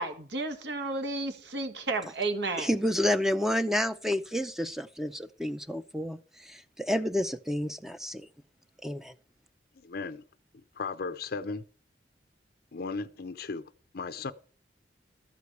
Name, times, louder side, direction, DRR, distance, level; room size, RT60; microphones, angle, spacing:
voice 1, 0.0-2.7, right 2 dB, 70° right, 1.6 m, -32 dB
voice 2, 2.6-8.3 8.8-9.1, left 1 dB, ahead, 0.6 m, -30 dB
voice 3, 9.8-10.2 10.8-11.7 12.7-14.3, left 4 dB, 60° left, 0.6 m, -36 dB
13.5 x 4.8 x 8.3 m
head